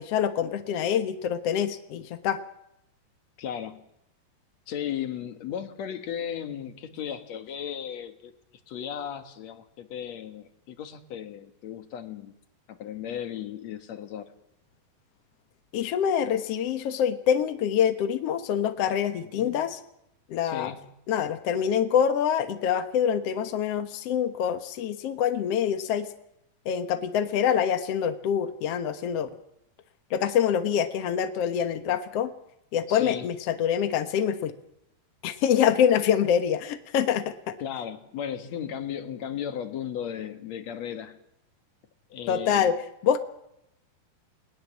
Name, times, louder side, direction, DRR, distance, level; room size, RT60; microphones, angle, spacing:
voice 1, 0.0-2.4 15.7-19.8 20.3-20.7 21.1-26.1 26.6-29.3 30.1-32.3 32.7-34.5 35.2-37.5 42.3-42.7 43.0-43.2, left 8 dB, 80° left, 9 dB, 1.4 m, -25 dB
voice 2, 3.4-3.8 4.7-8.3 8.7-12.3 12.7-14.3 19.4-19.6 20.4-20.9 32.9-33.3 37.6-41.2 42.1-42.7, left 9 dB, 55° left, 9 dB, 2.1 m, -35 dB
20.5 x 20.0 x 7.4 m, 0.79 s
omnidirectional pair, 4.7 m